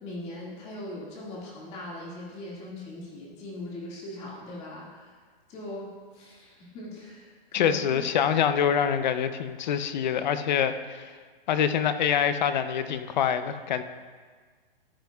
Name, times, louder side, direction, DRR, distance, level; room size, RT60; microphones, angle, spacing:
voice 1, 0.0-5.2 5.5-8.0, left 1 dB, 20° left, -4 dB, 2.0 m, -40 dB
voice 2, 7.5-11.1 11.5-13.8, left 8 dB, 50° left, 11 dB, 0.6 m, -25 dB
15.0 x 7.5 x 2.3 m, 1.5 s
hypercardioid pair, 155°, 30 cm